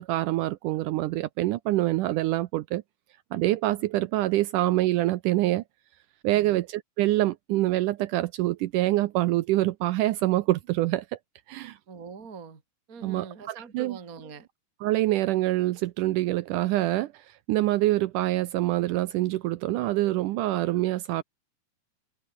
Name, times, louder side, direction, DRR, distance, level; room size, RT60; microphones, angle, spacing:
voice 1, 0.0-2.8 3.3-5.6 6.2-11.1 11.5-11.8 13.0-14.0 14.8-21.2, right 16 dB, 85° right, 1.8 m, -25 dB
voice 2, 11.9-12.6 12.9-14.5, right 5 dB, 25° right, 2.4 m, -43 dB
omnidirectional pair, 4.4 m